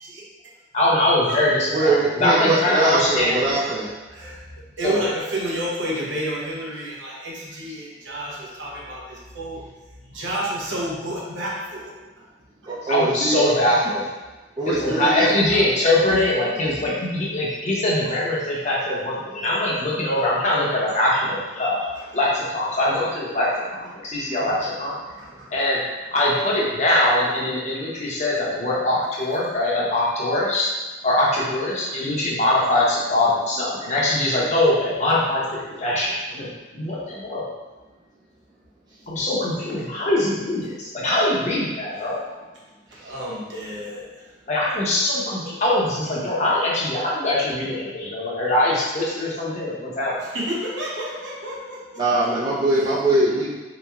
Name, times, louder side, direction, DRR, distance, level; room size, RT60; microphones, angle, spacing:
voice 1, 0.7-3.7 4.8-5.1 12.8-14.1 14.6-21.9 22.1-24.9 25.5-25.8 26.1-30.7 31.0-37.5 39.1-42.3 44.5-50.1, left 1 dB, 40° left, -5 dB, 0.8 m, -22 dB
voice 2, 1.7-3.9 12.7-13.5 14.6-15.3 52.0-53.6, right 2 dB, 20° right, -9 dB, 0.4 m, -22 dB
voice 3, 4.1-9.7 10.1-12.3 12.6-12.7 14.9-15.1 15.5-15.6 21.9-22.1 24.3-25.6 43.0-44.3 50.3-52.3 52.8-52.9, right 1 dB, 75° right, -4 dB, 0.9 m, -31 dB
4.0 x 3.0 x 2.4 m, 1.2 s
head